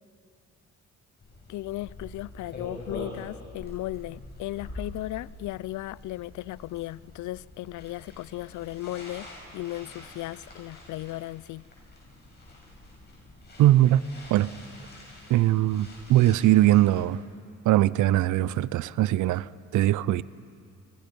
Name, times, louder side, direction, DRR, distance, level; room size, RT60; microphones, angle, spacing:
sound 1, 1.2-17.0, left 1 dB, 35° left, 7.7 m, -45 dB
voice 1, 1.5-9.3 9.5-11.6, left 17 dB, 75° left, 0.5 m, -36 dB
voice 2, 13.6-14.5 15.3-17.2 17.6-20.2, right 14 dB, 80° right, 0.6 m, -21 dB
25.5 x 25.5 x 5.3 m
cardioid pair, 105°, 30 cm